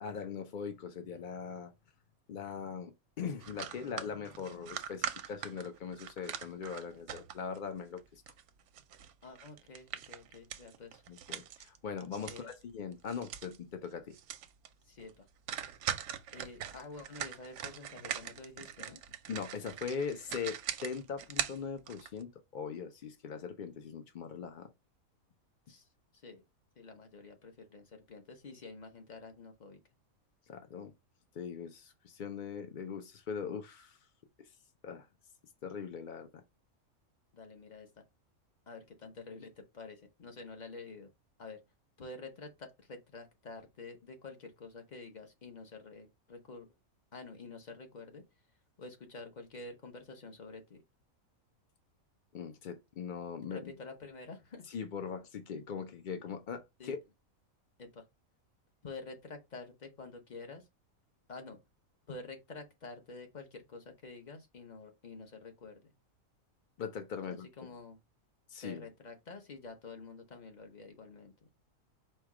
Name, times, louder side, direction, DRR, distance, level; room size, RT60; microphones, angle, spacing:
voice 1, 0.0-1.7 2.3-8.2 11.1-14.1 19.3-24.7 30.5-30.9 31.3-34.0 34.4-34.5 34.8-35.1 35.6-36.3 52.3-53.7 54.7-57.0 66.8-67.7 68.5-68.9, left 6 dB, 70° left, 0.4 m, -41 dB
sound 1, 3.4-7.6 8.0-12.6 12.9-13.6 13.8-13.9 14.1-14.7 15.0-15.1 15.5-22.2, right 9 dB, 65° right, 0.8 m, -41 dB
voice 2, 9.2-11.0 12.2-12.5 14.8-15.2 16.3-19.0 25.7-25.9 26.1-26.4 26.8-29.8 37.3-37.9 38.7-41.1 41.4-41.6 42.0-46.7 47.1-48.2 48.8-50.8 53.5-54.6 56.8-56.9 57.8-58.0 58.8-60.7 61.3-61.6 62.1-65.9 67.3-68.0 68.6-71.3, left 3 dB, 35° left, 0.9 m, -48 dB
4.5 x 2.2 x 4.7 m
omnidirectional pair, 1.5 m